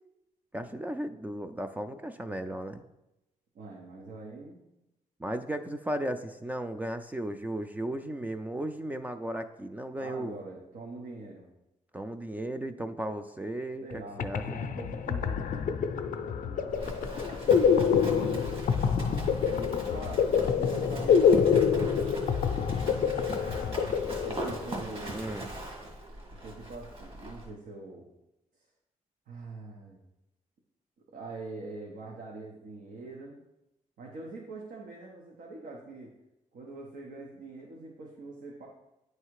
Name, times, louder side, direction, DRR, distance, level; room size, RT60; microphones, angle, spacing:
voice 1, 0.5-2.8 5.2-10.4 11.9-14.6 25.1-25.5, right 1 dB, 10° right, 8 dB, 0.3 m, -35 dB
voice 2, 3.5-4.6 10.0-11.5 13.8-15.5 16.1-17.1 17.6-18.5 19.4-21.6 24.2-25.3 26.4-28.1 29.3-30.0 31.1-33.4 34.0-36.1 36.5-38.7, right 3 dB, 80° right, -2 dB, 1.1 m, -43 dB
sound 1, 13.9-14.0 14.2-24.8, left 7 dB, 75° left, 0.4 m, -26 dB
Livestock farm animals working animals, 16.7-27.5, right 1 dB, 40° right, 1.6 m, -39 dB
9.6 x 3.2 x 4.7 m, 0.92 s
wide cardioid pair, 135°, 14 cm